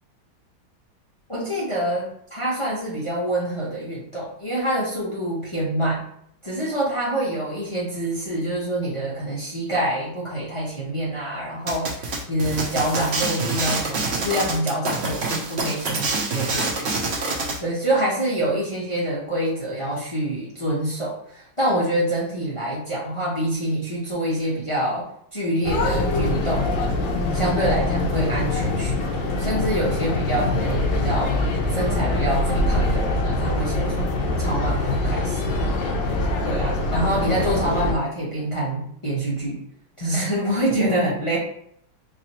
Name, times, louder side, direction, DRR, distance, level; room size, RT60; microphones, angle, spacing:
voice 1, 1.3-6.1 6.4-16.9 17.3-25.1 25.3-26.7 27.3-31.3 31.7-35.4 36.4-39.6 40.0-41.4, right 1 dB, 35° left, -7 dB, 0.5 m, -26 dB
sound 1, 11.7-17.6, right 3 dB, 90° right, 0.5 m, -26 dB
sound 2, 25.6-37.9, left 2 dB, 70° left, 1.4 m, -23 dB
4.0 x 2.9 x 2.9 m, 0.68 s
omnidirectional pair, 2.2 m